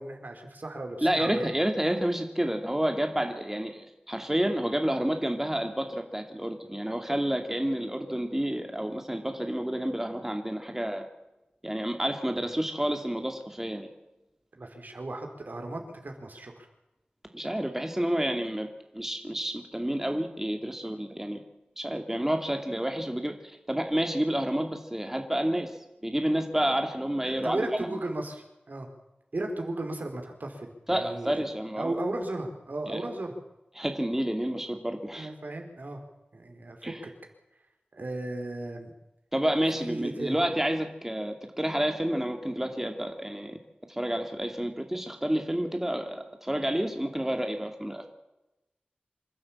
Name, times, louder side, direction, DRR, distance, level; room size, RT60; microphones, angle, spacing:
voice 1, 0.0-1.5 14.5-16.7 27.2-28.9 29.3-31.4 31.8-33.3 35.1-36.0 36.3-37.1 37.9-38.9 39.7-40.4, right 2 dB, 65° right, 3 dB, 4.5 m, -35 dB
voice 2, 1.0-11.0 11.6-13.9 17.3-21.4 21.8-23.4 23.7-25.7 26.0-27.9 30.9-31.9 32.9-33.0 33.8-35.3 36.8-37.0 39.3-43.6 43.9-48.1, right 1 dB, 10° right, 4 dB, 2.5 m, -29 dB
26.5 x 12.0 x 8.8 m, 0.98 s
wide cardioid pair, 60°, 3 cm